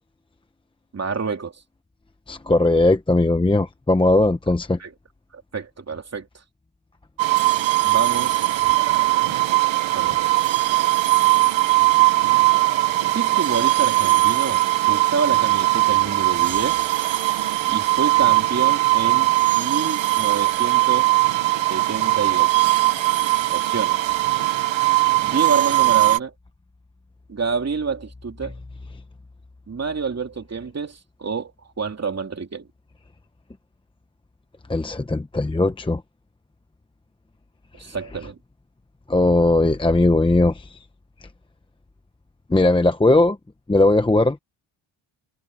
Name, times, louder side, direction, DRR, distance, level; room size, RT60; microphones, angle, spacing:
voice 1, 0.9-1.5 4.8-4.9 5.3-6.3 7.8-8.5 9.9-10.2 13.1-16.9 17.7-21.1 21.7-22.7 23.5-24.0 25.2-26.3 27.3-28.5 29.7-31.5 31.8-32.7 37.8-38.4, right 5 dB, 35° right, 3.1 m, -28 dB
voice 2, 2.3-4.8 34.7-36.0 39.1-40.7 42.5-43.4 43.7-44.4, left 2 dB, 10° left, 0.9 m, -18 dB
sound 1, 7.2-26.2, right 18 dB, 90° right, 1.2 m, -19 dB
wide cardioid pair, 135°, 45 cm